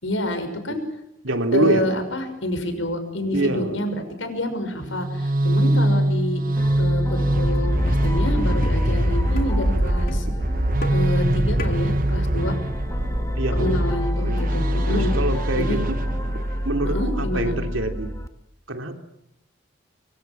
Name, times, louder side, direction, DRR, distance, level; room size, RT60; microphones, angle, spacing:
voice 1, 0.0-0.8 1.5-6.4 6.8-10.3 10.9-12.5 13.5-15.1 15.5-15.8 16.8-17.5, left 1 dB, 80° left, 7 dB, 6.2 m, -28 dB
voice 2, 1.2-2.0 3.3-3.8 9.8-9.9 13.4-13.8 14.2-14.4 14.9-16.0 16.6-18.1 18.7-18.9, right 2 dB, 90° right, 5 dB, 3.5 m, -25 dB
sound 1, 4.8-16.7, right 1 dB, 45° right, 1.0 m, -24 dB
sound 2, 6.6-18.3, equal, 15° left, 1.6 m, -26 dB
sound 3, 7.9-8.0 8.6-8.8 9.4-9.5 10.1-10.2 10.8-11.1 11.6-11.7, left 1 dB, 50° left, 2.3 m, -33 dB
24.5 x 24.5 x 7.5 m, 0.81 s
head